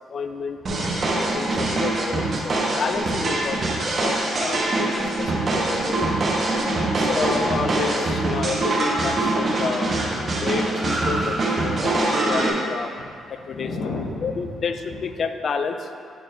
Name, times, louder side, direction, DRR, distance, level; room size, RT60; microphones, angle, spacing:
voice 1, 0.1-6.2 7.0-9.9 10.4-12.9 13.3-13.7 14.2-15.9, left 5 dB, 55° left, 8 dB, 0.4 m, -30 dB
sound 1, 0.7-12.5, right 2 dB, 45° right, 1.3 m, -24 dB
Car, 5.6-14.5, right 1 dB, 5° right, 1.1 m, -38 dB
voice 2, 6.5-7.3 9.9-10.4 13.0-13.1 13.4-14.6 14.9-15.0, left 3 dB, 75° left, 1 dB, 0.9 m, -34 dB
7.4 x 4.4 x 4.4 m, 2.4 s
cardioid pair, 90°, 0 cm